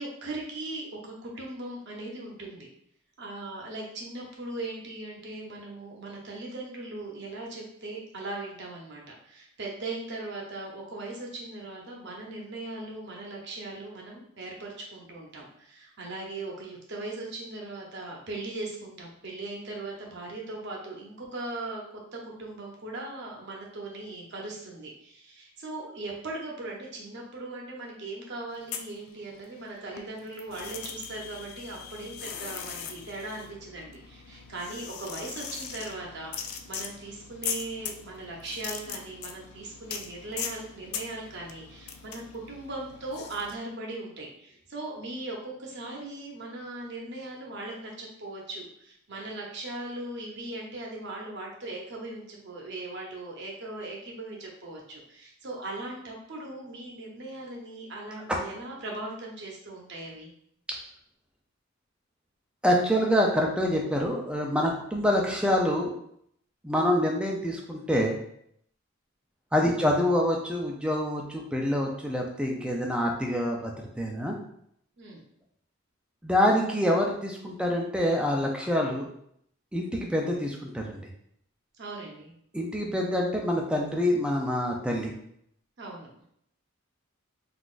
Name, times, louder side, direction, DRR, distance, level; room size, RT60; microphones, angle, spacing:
voice 1, 0.0-2.7 3.2-21.8 22.1-60.3 69.7-69.9 75.0-75.2 81.8-82.3 85.8-86.2, right 2 dB, 55° right, -1 dB, 0.7 m, -39 dB
sound 1, 28.5-29.6 29.9-43.6, left 7 dB, 80° left, 0.3 m, -40 dB
voice 2, 62.6-65.9 66.6-68.2 69.5-74.4 76.2-79.1 79.7-81.0 82.5-85.1, equal, 5° right, 0 dB, 0.4 m, -26 dB
3.8 x 2.4 x 2.4 m, 0.71 s
head